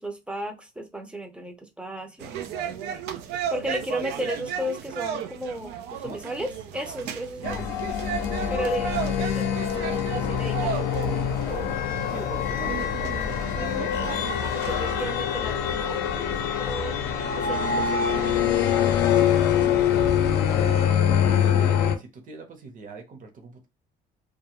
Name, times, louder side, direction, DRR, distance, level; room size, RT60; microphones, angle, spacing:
voice 1, 0.0-2.4 3.5-7.7 8.5-11.4 13.5-13.9 14.5-17.0 17.3-19.1, equal, 5° right, 0.5 m, -35 dB
sound 1, 2.2-15.1, right 8 dB, 90° right, 0.4 m, -34 dB
sound 2, 7.4-22.0, left 8 dB, 80° left, 0.5 m, -24 dB
voice 2, 11.9-13.3 20.5-20.8 21.1-23.7, right 3 dB, 50° right, 0.9 m, -41 dB
2.3 x 2.1 x 2.9 m
cardioid pair, 110°, 17 cm